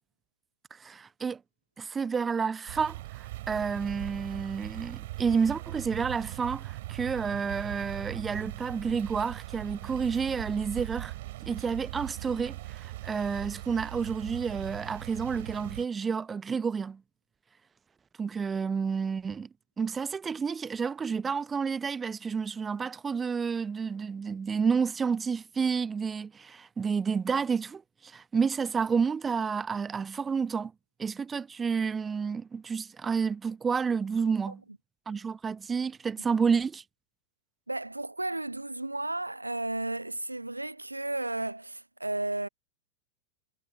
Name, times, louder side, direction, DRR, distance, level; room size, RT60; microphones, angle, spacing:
voice 1, 0.8-1.4 1.8-11.1 11.5-17.0 18.2-19.5 19.8-30.7 31.0-34.6 35.1-36.8, right 5 dB, 15° right, 0.8 m, -30 dB
sound 1, 2.7-15.9, right 17 dB, 55° right, 3.1 m, -40 dB
voice 2, 37.7-42.5, right 2 dB, 85° right, 0.8 m, -33 dB
figure-of-eight pair, 90°, 0 cm